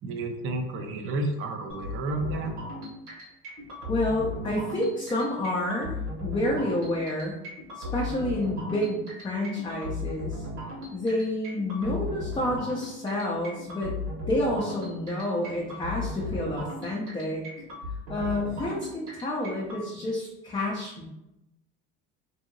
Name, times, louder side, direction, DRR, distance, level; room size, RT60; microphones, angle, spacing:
voice 1, 0.0-2.5, right 2 dB, 45° right, 4 dB, 0.5 m, -31 dB
sound 1, 1.7-19.8, left 2 dB, 80° right, 1.3 m, -36 dB
voice 2, 3.9-5.9 6.2-7.4 7.8-10.4 10.9-13.9 14.3-17.4 18.1-21.1, left 1 dB, 15° left, -3 dB, 0.5 m, -29 dB
2.7 x 2.7 x 2.6 m, 0.90 s
supercardioid pair, 100°, 31 cm